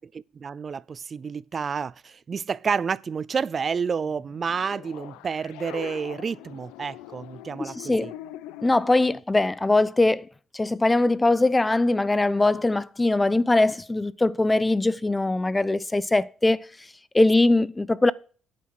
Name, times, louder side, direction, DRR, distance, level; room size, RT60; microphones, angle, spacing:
voice 1, 0.0-8.1, right 6 dB, 40° right, 0.4 m, -30 dB
sound 1, 4.1-9.1, left 13 dB, 90° left, 0.7 m, -42 dB
voice 2, 7.6-8.1 8.6-10.3 10.5-16.7 17.1-18.1, left 2 dB, 15° left, 0.7 m, -21 dB
10.5 x 8.5 x 4.8 m
supercardioid pair, 75°, 0 cm